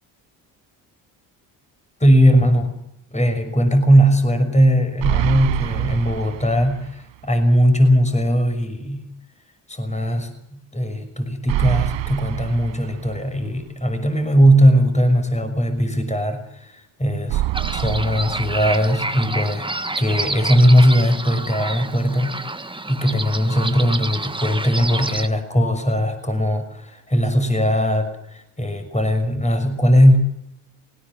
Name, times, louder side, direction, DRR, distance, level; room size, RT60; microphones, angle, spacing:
voice 1, 2.0-2.8 3.1-9.1 9.7-19.7 20.0-30.4, equal, 15° left, 7 dB, 6.0 m, -19 dB
sound 1, 5.0-7.0 7.4-7.5 11.5-13.5 17.3-19.3, right 16 dB, 60° right, 0.9 m, -26 dB
sound 2, 17.5-25.3, right 2 dB, 10° right, 1.4 m, -29 dB
19.5 x 18.5 x 7.7 m, 0.79 s
supercardioid pair, 65°, 49 cm